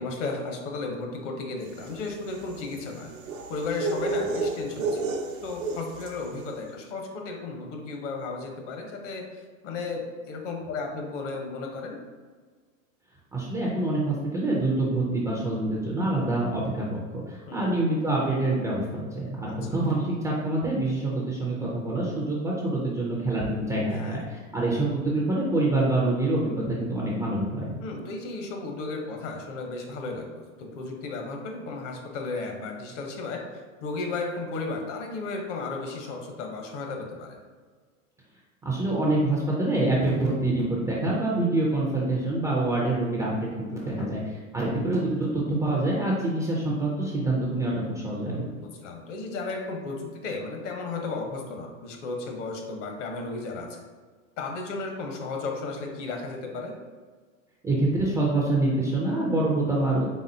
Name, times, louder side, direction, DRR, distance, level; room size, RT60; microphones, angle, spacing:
voice 1, 0.0-3.1 3.5-5.1 5.4-9.3 9.6-12.0 17.5-17.8 19.5-19.8 23.9-24.2 27.8-33.4 33.8-37.4 43.8-44.1 48.2-53.8 54.4-56.7, left 3 dB, 60° left, 2 dB, 0.9 m, -34 dB
sound 1, 1.7-6.3, right 3 dB, 90° right, 0.7 m, -31 dB
voice 2, 13.3-27.7 38.6-44.2 44.5-48.5 57.6-60.1, right 2 dB, 10° right, -5 dB, 0.3 m, -26 dB
4.1 x 3.5 x 2.6 m, 1.5 s
hypercardioid pair, 105°, 41 cm